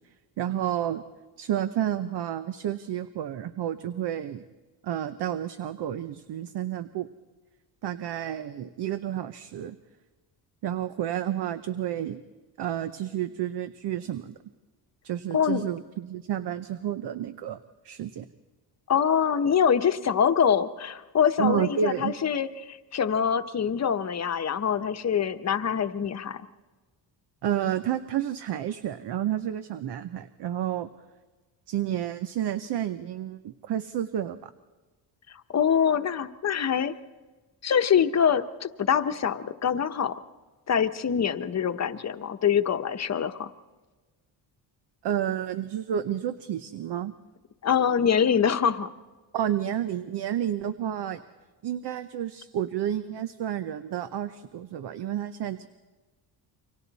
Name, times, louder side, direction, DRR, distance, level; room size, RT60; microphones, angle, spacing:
voice 1, 0.4-1.0 1.4-4.4 4.8-7.1 7.8-9.8 10.6-12.2 12.6-14.4 15.0-17.6 17.8-18.3 21.4-22.1 27.4-30.9 31.7-34.5 45.0-47.1 49.3-51.2 51.6-55.7, right 10 dB, 65° right, 11 dB, 0.9 m, -30 dB
voice 2, 18.9-26.4 35.5-36.9 37.6-40.2 40.7-43.5 47.6-48.9, left 7 dB, 35° left, 8 dB, 1.0 m, -24 dB
29.0 x 25.0 x 4.1 m, 1.3 s
cardioid pair, 120°, 43 cm